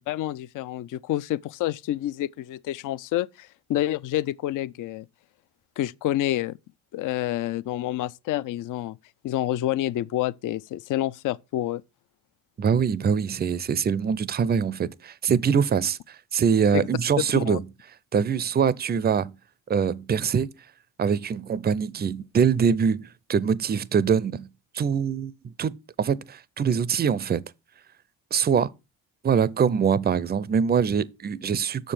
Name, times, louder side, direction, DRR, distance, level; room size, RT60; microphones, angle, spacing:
voice 1, 0.1-5.0 5.8-6.6 6.9-9.0 9.2-11.8 16.7-16.9 17.3-17.6, left 13 dB, 50° left, 0.5 m, -28 dB
voice 2, 12.6-17.6 18.1-19.3 19.7-20.5 21.0-24.5 24.7-27.4 28.3-28.7 29.2-31.9, right 7 dB, 25° right, 0.5 m, -24 dB
6.6 x 5.1 x 5.7 m
supercardioid pair, 75°, 40 cm